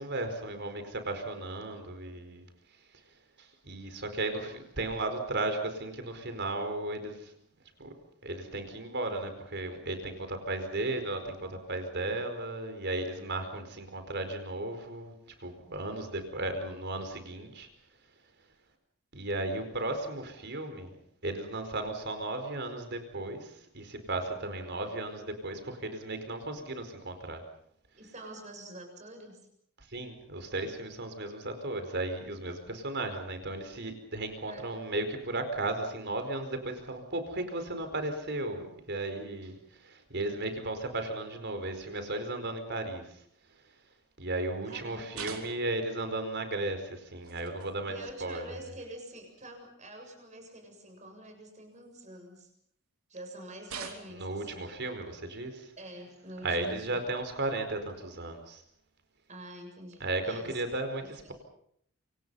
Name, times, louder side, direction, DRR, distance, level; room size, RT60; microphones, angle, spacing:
voice 1, 0.0-2.5 3.4-7.3 7.8-7.9 8.2-15.1 15.4-17.7 19.1-21.0 21.2-27.4 29.8-43.2 44.2-48.5 54.2-55.7 56.4-58.6 60.0-61.3, right 2 dB, 50° right, 7 dB, 4.8 m, -35 dB
voice 2, 28.0-29.5 34.5-34.7 44.6-45.0 47.9-52.5 53.1-54.7 55.8-56.9 59.3-60.6 61.0-61.3, right 1 dB, 35° right, 4 dB, 7.4 m, -46 dB
sound 1, 45.1-45.8 47.2-47.8 48.7-48.8 49.4-49.5 51.7-52.4 53.7-54.3 56.1-56.3 57.9-58.0 59.2-59.3 60.4-60.8, right 6 dB, 80° right, 3.6 m, -45 dB
28.0 x 26.0 x 5.7 m, 0.68 s
head